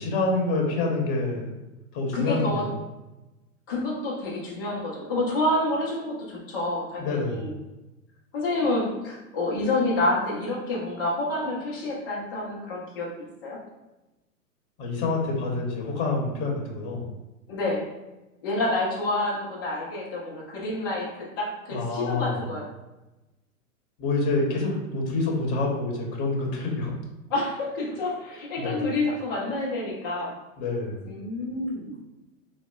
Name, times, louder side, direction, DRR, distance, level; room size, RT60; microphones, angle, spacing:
voice 1, 0.0-1.5 1.9-2.8 7.0-7.5 14.8-17.1 21.7-22.4 24.0-26.9 28.6-28.9 30.6-31.1, left 3 dB, 35° left, 0 dB, 0.7 m, -27 dB
voice 2, 2.1-2.7 3.7-7.5 8.3-13.1 13.4-13.6 17.5-17.9 18.4-22.6 27.3-30.3 31.0-31.9, left 2 dB, 20° left, -5 dB, 0.3 m, -28 dB
3.6 x 2.0 x 2.3 m, 1.0 s
hypercardioid pair, 120°, 44 cm